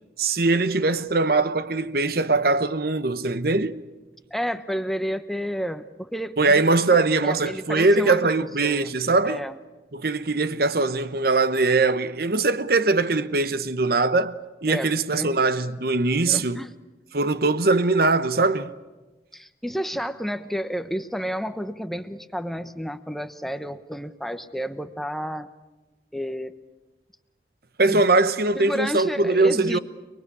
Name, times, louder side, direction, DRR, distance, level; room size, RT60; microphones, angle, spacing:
voice 1, 0.2-3.8 6.4-9.4 9.9-16.6 17.1-18.7 27.8-29.8, right 3 dB, 55° right, 1.0 m, -21 dB
voice 2, 4.3-8.3 8.6-9.6 14.7-15.4 16.2-16.7 19.3-25.5 26.1-26.5 27.9-28.1 28.5-29.8, equal, ahead, 1.0 m, -31 dB
29.5 x 21.0 x 8.5 m
head